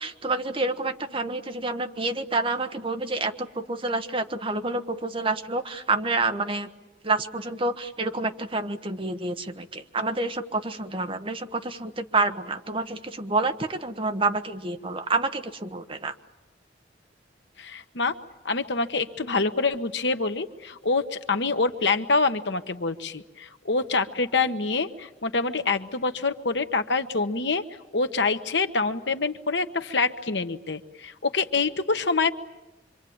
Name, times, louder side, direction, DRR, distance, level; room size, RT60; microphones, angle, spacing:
voice 1, 0.0-6.7 7.0-16.1, right 3 dB, 30° right, 7 dB, 1.2 m, -28 dB
voice 2, 17.6-18.1 18.4-27.6 27.9-32.3, left 4 dB, 70° left, 8 dB, 1.3 m, -26 dB
26.0 x 25.5 x 8.7 m, 1.1 s
head